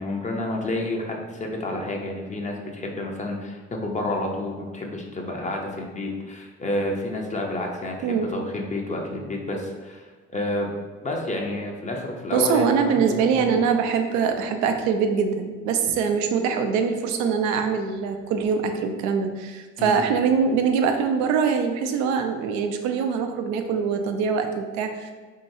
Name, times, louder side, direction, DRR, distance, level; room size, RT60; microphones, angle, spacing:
voice 1, 0.0-10.1 10.3-10.7 11.0-13.6 19.8-19.9, left 1 dB, 25° left, 0 dB, 0.6 m, -29 dB
voice 2, 8.0-8.3 12.3-25.1, right 6 dB, 75° right, 6 dB, 0.5 m, -23 dB
3.0 x 2.8 x 2.6 m, 1.4 s
supercardioid pair, 65°, 30 cm